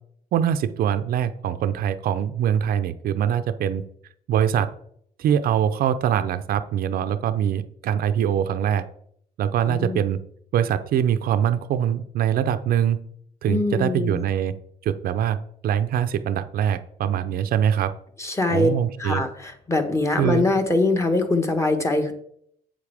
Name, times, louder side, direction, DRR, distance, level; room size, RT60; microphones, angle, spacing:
voice 1, 0.3-3.8 4.3-4.7 5.2-8.8 9.4-10.2 10.5-13.0 13.4-14.5 14.8-15.4 15.6-17.9 18.5-19.2 20.2-20.5, right 9 dB, 60° right, 10 dB, 0.6 m, -23 dB
voice 2, 9.7-10.0 13.5-14.3 18.2-18.7 19.0-22.1, left 2 dB, 15° left, 5 dB, 1.3 m, -23 dB
8.2 x 7.9 x 3.5 m, 0.67 s
cardioid pair, 110°, 17 cm